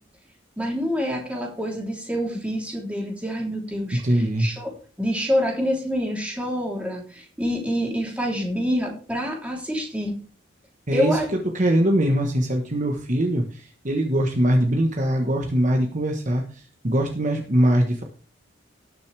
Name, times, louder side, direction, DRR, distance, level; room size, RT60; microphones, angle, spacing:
voice 1, 0.6-4.7 5.0-10.2 10.9-11.3, equal, 5° right, -2 dB, 3.3 m, -26 dB
voice 2, 3.9-4.5 10.9-11.2 11.5-18.0, right 1 dB, 40° right, 2 dB, 1.2 m, -22 dB
18.5 x 6.6 x 3.4 m, 0.39 s
head